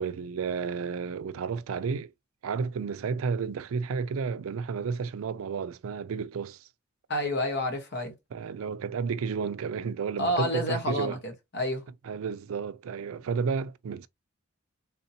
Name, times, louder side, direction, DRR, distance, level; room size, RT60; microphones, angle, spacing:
voice 1, 0.0-2.1 2.4-6.7 8.3-11.2 12.0-14.1, right 5 dB, 75° right, 0.4 m, -32 dB
voice 2, 7.1-8.1 10.2-11.8, equal, 55° left, 1.1 m, -29 dB
3.6 x 2.7 x 2.7 m
head